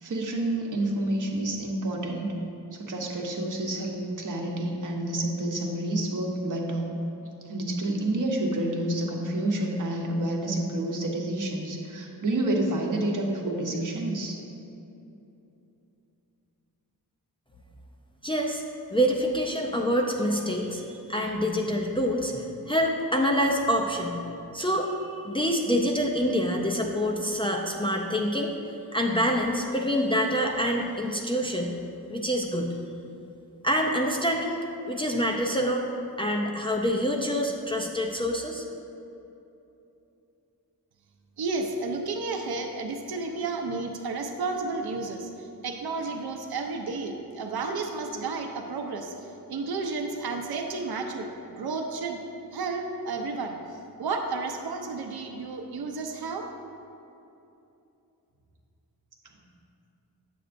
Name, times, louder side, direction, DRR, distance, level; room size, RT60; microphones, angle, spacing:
voice 1, 0.0-2.3 2.7-6.9 7.4-14.4, right 1 dB, 50° right, 0 dB, 1.1 m, -29 dB
voice 2, 18.2-18.6 18.9-24.2 24.5-24.9 25.2-28.5 28.9-31.7 32.1-32.7 33.6-35.9 36.2-38.7, equal, 15° left, 0 dB, 0.5 m, -26 dB
voice 3, 41.4-49.1 49.5-52.2 52.5-53.6 54.0-56.5, right 3 dB, 70° right, 4 dB, 0.7 m, -32 dB
9.0 x 7.6 x 2.6 m, 2.8 s
wide cardioid pair, 130°, 39 cm